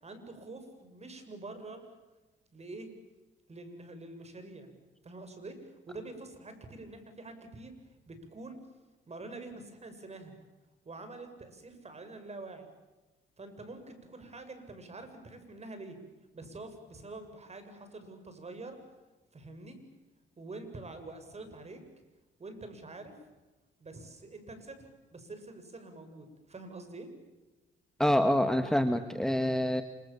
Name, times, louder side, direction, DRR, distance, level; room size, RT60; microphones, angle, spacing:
voice 1, 0.0-1.9 2.5-2.9 3.5-4.7 5.0-7.7 8.1-8.6 9.1-10.4 10.8-12.7 13.4-16.0 16.3-18.8 19.3-19.8 20.4-21.8 22.4-23.1 23.8-27.1, right 2 dB, 35° right, 8 dB, 7.3 m, -46 dB
voice 2, 28.0-29.8, left 1 dB, 5° left, 8 dB, 1.9 m, -26 dB
30.0 x 27.0 x 7.3 m, 1.1 s
cardioid pair, 90°, 20 cm